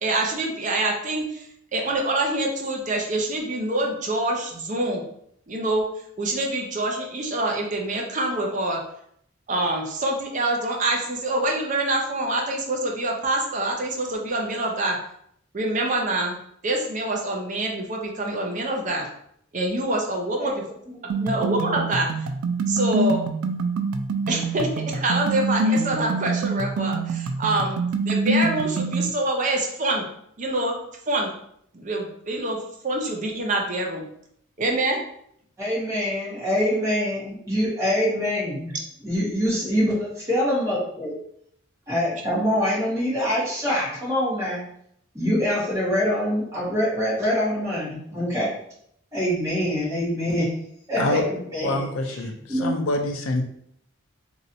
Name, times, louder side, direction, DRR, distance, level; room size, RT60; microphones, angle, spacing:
voice 1, 0.0-5.0 5.5-5.9 6.2-8.8 9.5-15.0 15.5-16.4 16.6-19.1 19.5-20.6 21.1-22.1 22.7-23.2 24.3-27.8 28.0-30.0 30.4-30.7 31.1-31.3 31.7-32.6 32.8-34.0 34.6-35.0, right 2 dB, 35° right, 1 dB, 0.6 m, -25 dB
sound 1, 21.1-29.1, right 2 dB, 85° right, 0.3 m, -25 dB
voice 2, 35.6-38.7 39.0-41.2 41.9-44.6 45.1-48.5 49.1-50.4 50.9-52.7, equal, 15° right, -9 dB, 1.5 m, -25 dB
voice 3, 51.6-53.4, left 2 dB, 75° left, 4 dB, 0.5 m, -26 dB
3.1 x 2.7 x 2.6 m, 0.70 s
head